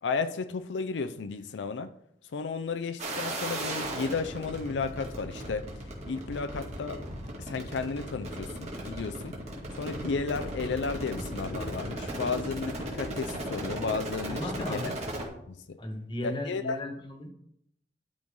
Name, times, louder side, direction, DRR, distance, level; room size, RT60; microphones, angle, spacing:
voice 1, 0.0-1.9 2.3-5.7 6.0-7.0 7.4-9.4 9.8-14.9 15.5-15.8 16.2-16.8, left 4 dB, 85° left, 0.4 m, -33 dB
sound 1, 3.0-15.3, right 1 dB, 40° right, 2.2 m, -36 dB
voice 2, 14.3-14.9 15.8-17.3, left 1 dB, 30° left, 1.2 m, -36 dB
12.0 x 4.6 x 3.7 m
head